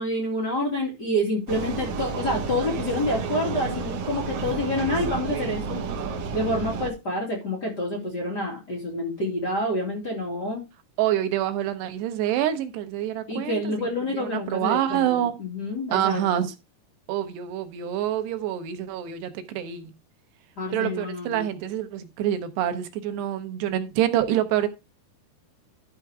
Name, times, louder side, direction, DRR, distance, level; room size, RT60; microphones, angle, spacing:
voice 1, 0.0-5.8 6.3-10.6 13.3-15.1 15.4-16.2 20.6-21.4, left 1 dB, 30° left, 2.3 m, -28 dB
Vehicle, 1.5-6.9, right 4 dB, 60° right, 2.1 m, -31 dB
voice 2, 11.0-13.9 14.1-15.4 15.9-16.5 17.1-19.9 20.7-24.7, right 11 dB, 85° right, 3.0 m, -26 dB
12.0 x 4.5 x 4.8 m
omnidirectional pair, 4.7 m